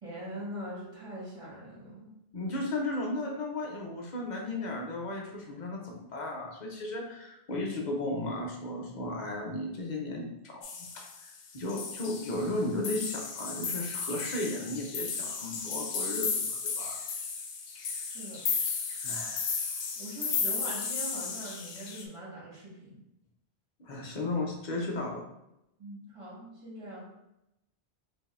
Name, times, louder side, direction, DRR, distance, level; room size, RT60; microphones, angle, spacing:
voice 1, 0.0-2.1 18.1-18.4 19.9-23.0 25.8-27.1, right 1 dB, 30° right, -7 dB, 1.6 m, -42 dB
voice 2, 2.3-17.0 19.0-19.6 23.8-25.2, left 2 dB, 45° left, 0 dB, 0.8 m, -35 dB
sound 1, 10.6-11.3 11.7-12.6 12.8-22.0, left 5 dB, 90° left, 0.9 m, -34 dB
4.9 x 2.7 x 2.5 m, 0.87 s
omnidirectional pair, 1.1 m